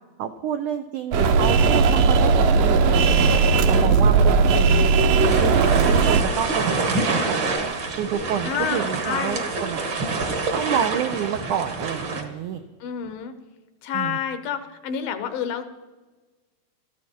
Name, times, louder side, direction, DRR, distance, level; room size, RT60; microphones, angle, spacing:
voice 1, 0.2-3.3 3.7-4.8 5.2-7.5 8.0-9.8 10.5-12.6 13.9-14.2, right 9 dB, 85° right, 7 dB, 1.7 m, -28 dB
sound 1, 1.1-6.2, right 4 dB, 70° right, 2.6 m, -17 dB
voice 2, 3.6-4.0 8.5-9.4 12.8-13.3 13.8-15.7, left 8 dB, 75° left, 10 dB, 2.5 m, -29 dB
sound 2, 5.2-12.2, right 3 dB, 50° right, 1.5 m, -27 dB
19.5 x 14.0 x 4.4 m, 1.3 s
omnidirectional pair, 4.5 m